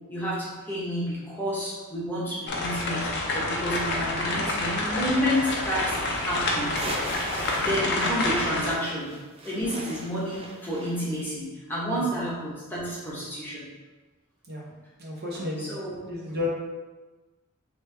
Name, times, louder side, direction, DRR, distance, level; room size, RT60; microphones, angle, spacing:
voice 1, 0.1-5.8 6.2-6.9 7.5-9.1 9.4-13.6 15.6-16.1, equal, 10° left, -7 dB, 0.9 m, -30 dB
sound 1, 2.5-8.7, left 2 dB, 50° left, 0.6 m, -28 dB
sound 2, 5.6-7.8 8.1-11.2, right 2 dB, 25° right, 0.4 m, -39 dB
voice 2, 15.0-15.7 16.0-16.5, left 3 dB, 45° right, -4 dB, 0.8 m, -32 dB
3.1 x 3.1 x 3.3 m, 1.2 s
head